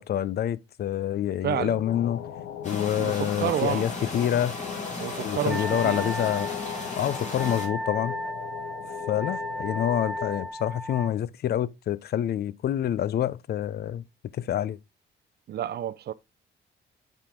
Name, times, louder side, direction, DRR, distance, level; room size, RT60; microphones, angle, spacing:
voice 1, 0.0-2.2 2.6-4.5 5.2-6.5 6.9-8.2 9.1-14.0 14.3-14.8, left 10 dB, 55° left, 0.4 m, -27 dB
voice 2, 1.4-1.8 2.9-3.9 5.0-6.0 15.5-16.1, right 11 dB, 55° right, 0.5 m, -30 dB
sound 1, 1.8-10.5, left 9 dB, 85° left, 0.8 m, -39 dB
sound 2, 2.6-7.7, left 3 dB, 35° left, 2.9 m, -36 dB
Wind instrument woodwind instrument, 5.5-11.1, equal, ahead, 0.5 m, -35 dB
7.3 x 3.7 x 3.7 m
cardioid pair, 90°, 20 cm